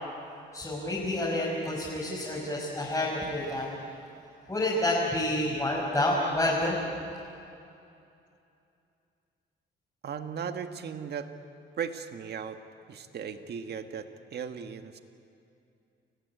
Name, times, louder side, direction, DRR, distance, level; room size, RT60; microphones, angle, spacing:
voice 1, 0.5-4.0 4.5-6.8, left 1 dB, 15° left, -6 dB, 5.8 m, -29 dB
voice 2, 10.0-11.3 11.8-12.6 12.9-15.0, right 7 dB, 55° right, 7 dB, 1.6 m, -37 dB
29.0 x 15.0 x 9.7 m, 2.6 s
cardioid pair, 90°, 20 cm